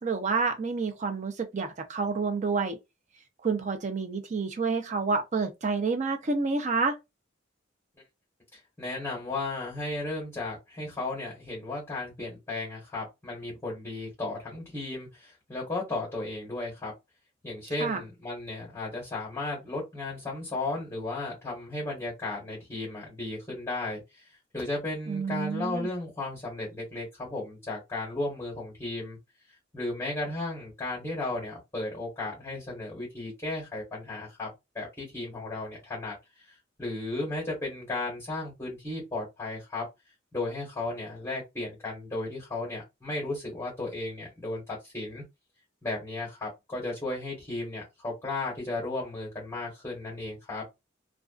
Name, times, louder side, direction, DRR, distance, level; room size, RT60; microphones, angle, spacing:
voice 1, 0.0-2.8 3.4-7.0 17.8-18.0 25.1-25.9, right 4 dB, 35° right, 0.4 m, -29 dB
voice 2, 8.8-16.9 17.4-24.0 24.5-29.2 29.7-36.1 36.8-39.8 40.3-45.2 45.8-50.6, left 2 dB, 15° left, 1.1 m, -34 dB
2.3 x 2.2 x 2.3 m
head